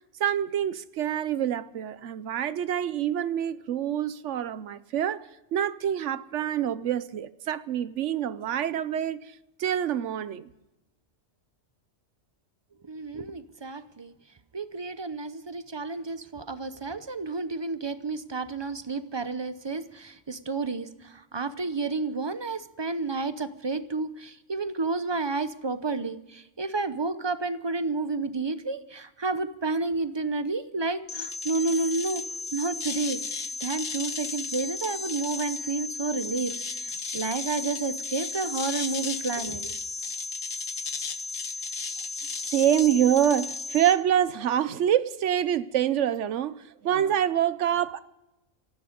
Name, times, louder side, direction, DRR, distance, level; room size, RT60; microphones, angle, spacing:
voice 1, 0.2-9.2 9.6-10.5 42.5-48.0, right 10 dB, 70° right, 1.0 m, -26 dB
voice 2, 12.8-14.1 14.5-32.2 32.5-33.2 33.6-39.7, right 3 dB, 25° right, 0.7 m, -31 dB
sound 1, 31.1-43.9, left 4 dB, 80° left, 1.6 m, -34 dB
17.5 x 14.5 x 5.1 m
omnidirectional pair, 1.3 m